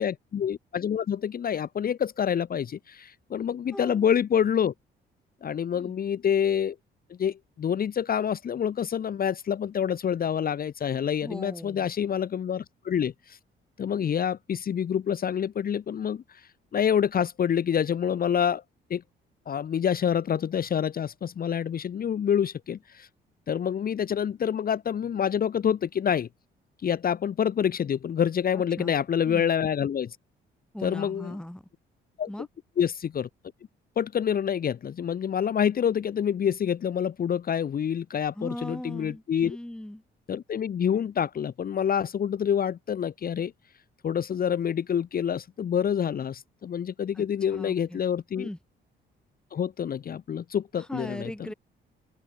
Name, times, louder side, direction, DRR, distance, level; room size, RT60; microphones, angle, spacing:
voice 1, 0.0-4.7 5.4-6.8 7.2-13.4 13.8-18.6 18.9-19.0 19.5-23.1 23.5-26.3 26.8-30.2 30.8-31.4 32.2-32.3 32.8-33.3 34.0-39.6 40.3-43.5 44.0-48.5 49.5-51.5, left 8 dB, 50° left, 1.1 m, -27 dB
voice 2, 3.7-4.0 5.8-5.9 11.2-11.9 28.8-28.9 29.3-29.5 30.7-31.6 32.3-32.5 38.4-40.0 47.2-47.3 47.5-48.0 48.4-48.6 50.8-51.5, left 1 dB, 5° left, 3.4 m, -38 dB
open air
cardioid pair, 90°, 20 cm